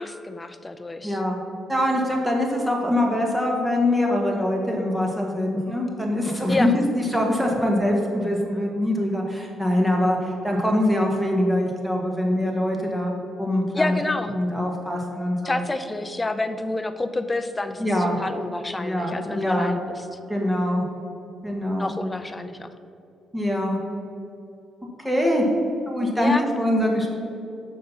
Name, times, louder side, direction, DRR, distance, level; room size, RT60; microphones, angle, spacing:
voice 1, 0.0-1.2 6.5-6.7 13.7-14.3 15.4-19.9 21.8-22.7 26.2-26.4, left 2 dB, 20° left, 9 dB, 0.6 m, -28 dB
voice 2, 1.0-1.4 1.7-6.8 7.1-13.1 13.4-14.0 14.3-15.6 17.8-18.2 18.8-19.7 20.3-20.9 21.4-21.9 23.3-23.8 25.0-25.5 25.9-27.1, left 1 dB, 5° right, 0 dB, 1.6 m, -23 dB
6.5 x 5.5 x 5.8 m, 2.7 s
cardioid pair, 90°, 0 cm